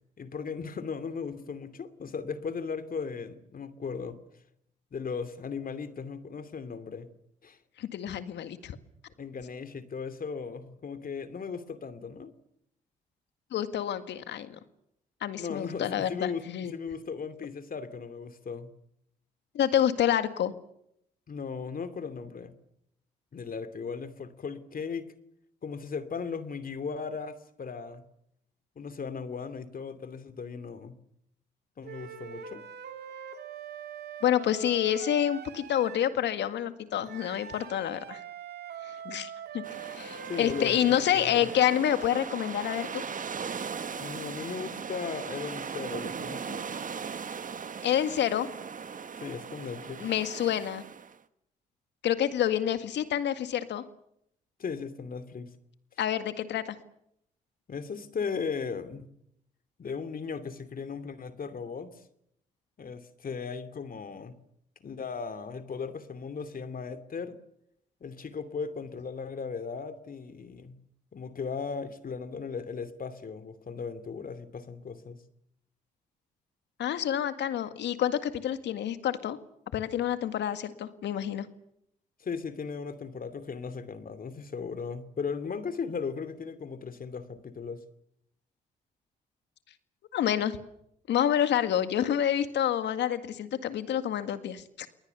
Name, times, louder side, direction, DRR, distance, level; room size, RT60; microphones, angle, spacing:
voice 1, 0.2-4.2 4.9-7.1 7.4-7.6 9.2-12.3 15.4-18.7 21.3-22.5 23.3-25.1 25.6-28.1 28.8-31.0 31.8-32.6 39.0-39.2 40.3-41.5 44.0-46.6 49.2-50.1 54.6-55.5 57.7-59.1 59.8-62.0 62.8-64.4 64.8-67.4 68.0-70.8 71.1-75.2 82.2-87.8, left 5 dB, 50° left, 11 dB, 2.6 m, -37 dB
voice 2, 7.8-8.8 13.5-14.5 15.2-16.7 19.5-20.5 34.2-38.2 38.8-43.0 47.8-48.5 50.0-50.8 52.0-53.8 56.0-56.8 76.8-79.4 79.7-81.5 90.1-90.6 91.1-94.9, left 10 dB, 70° left, 10 dB, 1.9 m, -28 dB
sound 1, 31.8-36.1 37.0-41.7, right 8 dB, 60° right, 2.8 m, -43 dB
sound 2, 39.6-51.2, right 6 dB, 45° right, 1.4 m, -38 dB
29.0 x 20.0 x 7.0 m, 0.76 s
hypercardioid pair, 50°, 19 cm